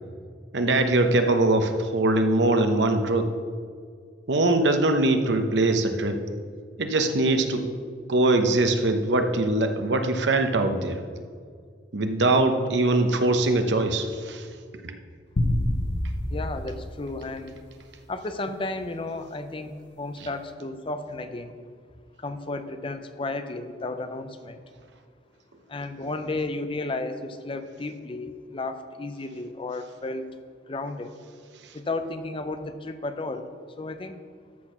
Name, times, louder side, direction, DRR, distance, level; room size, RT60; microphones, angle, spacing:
voice 1, 0.5-3.3 4.3-6.2 6.8-7.7 8.1-11.0 11.9-14.5 14.7-15.0 20.2-20.3 31.6-31.7, right 2 dB, 85° right, 6 dB, 0.9 m, -22 dB
sound 1, 15.4-17.9, left 1 dB, 75° left, 0.9 m, -28 dB
voice 2, 16.3-17.6 18.1-21.6 22.2-24.6 25.7-30.3 30.7-31.2 31.7-33.5 33.8-34.2, left 2 dB, 30° left, 9 dB, 0.6 m, -33 dB
13.0 x 4.4 x 6.0 m, 2.1 s
head